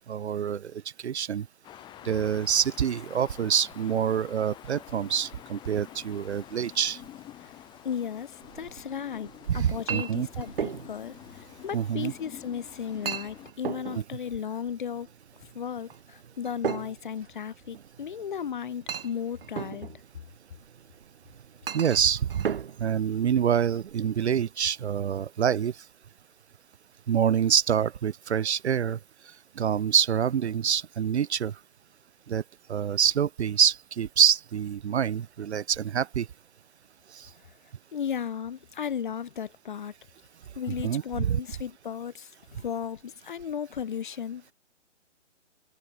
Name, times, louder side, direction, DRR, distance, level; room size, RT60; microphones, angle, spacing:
voice 1, 0.1-1.5 2.0-7.0 9.5-10.3 11.7-12.1 13.9-14.0 21.7-22.5 22.8-25.7 27.1-29.0 29.6-31.5 32.3-32.4 32.7-36.3 37.1-37.3 40.7-41.4, right 8 dB, 65° right, 0.5 m, -26 dB
sound 1, 1.6-13.5, left 13 dB, 10° left, 2.0 m, -48 dB
voice 2, 7.8-8.3 8.5-9.3 9.5-11.1 11.6-15.1 15.5-15.9 16.4-19.9 37.9-39.9 40.6-42.3 42.6-44.5, left 8 dB, 40° left, 0.7 m, -35 dB
Chink clink, 8.4-23.9, right 7 dB, 50° right, 2.5 m, -39 dB
figure-of-eight pair, 135°, 37 cm